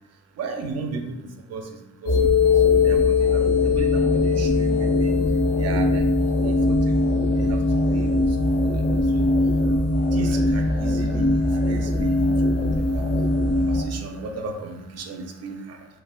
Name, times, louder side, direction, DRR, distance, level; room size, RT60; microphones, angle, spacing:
voice 1, 0.4-5.2 5.6-15.9, right 3 dB, 55° right, 4 dB, 0.5 m, -36 dB
sound 1, 2.1-13.8, left 3 dB, 55° left, 0.6 m, -20 dB
3.2 x 2.3 x 2.2 m, 0.94 s
cardioid pair, 90°, 30 cm